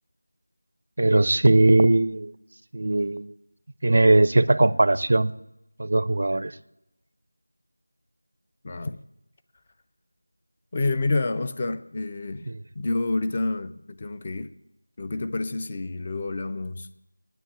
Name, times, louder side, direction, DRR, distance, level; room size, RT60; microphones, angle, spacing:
voice 1, 1.0-2.3 2.7-3.3 3.8-5.3 5.8-6.5 12.5-12.6, right 2 dB, 45° right, 16 dB, 0.5 m, -19 dB
voice 2, 8.6-9.0 10.7-12.5 12.8-14.5 15.0-16.9, left 2 dB, 20° left, 10 dB, 0.4 m, -28 dB
9.2 x 9.0 x 8.4 m, 0.86 s
figure-of-eight pair, 175°, 0 cm